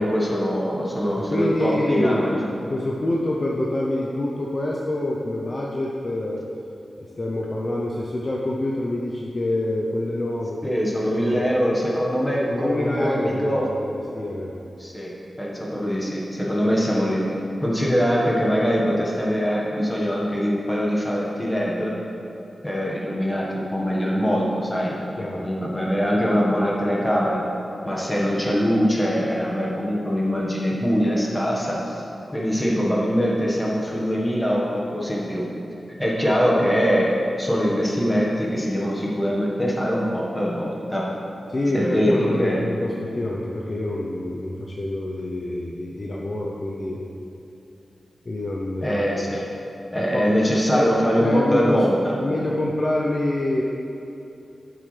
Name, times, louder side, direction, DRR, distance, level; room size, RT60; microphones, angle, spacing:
voice 1, 0.0-2.6 10.6-13.7 14.8-15.1 15.4-17.2 17.6-21.9 22.6-25.0 25.3-27.4 27.8-32.0 32.3-35.5 36.0-41.2 41.7-42.6 48.8-49.4 49.9-52.1, equal, 10° left, -3 dB, 1.4 m, -23 dB
voice 2, 1.2-6.4 7.0-10.7 11.0-11.5 12.5-14.5 25.2-25.5 41.5-47.0 48.3-49.0 50.1-50.3 50.7-50.9 51.2-53.6, left 1 dB, 35° left, -3 dB, 0.7 m, -26 dB
12.0 x 7.7 x 3.3 m, 2.9 s
wide cardioid pair, 145°, 0 cm